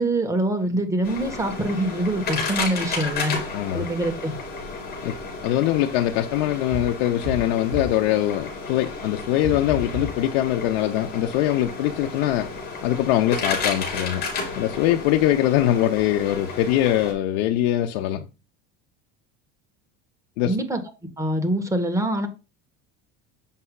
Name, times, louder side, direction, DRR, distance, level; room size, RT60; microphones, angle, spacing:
voice 1, 0.0-3.4 3.7-4.3 20.4-20.8 21.2-22.3, right 1 dB, 10° right, 1.2 m, -24 dB
sound 1, 1.0-17.1, left 4 dB, 30° left, 2.9 m, -32 dB
voice 2, 3.5-3.9 5.0-5.1 5.4-12.5 12.8-14.3 14.6-18.3 20.4-20.6, left 13 dB, 80° left, 0.7 m, -22 dB
sound 2, 6.7-8.1 9.4-10.3, left 2 dB, 25° right, 2.6 m, -32 dB
7.5 x 5.5 x 2.3 m
cardioid pair, 145°, 31 cm